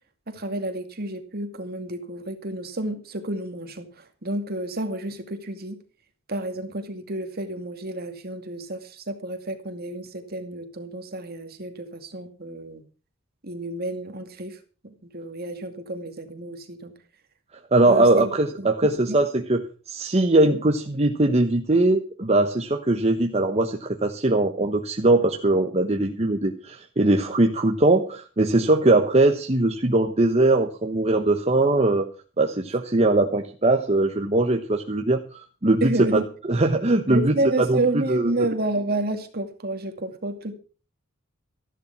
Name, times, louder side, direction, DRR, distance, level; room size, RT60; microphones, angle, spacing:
voice 1, 0.3-3.9 4.2-5.8 6.3-12.8 13.4-14.6 14.8-16.9 17.9-18.3 18.6-19.2 20.5-20.6 35.8-36.3 37.1-40.5, right 2 dB, 50° right, 7 dB, 2.4 m, -30 dB
voice 2, 17.7-19.6 19.9-32.1 32.4-36.2 36.5-38.5, right 2 dB, 30° right, 4 dB, 1.1 m, -21 dB
14.0 x 11.5 x 5.8 m, 0.37 s
head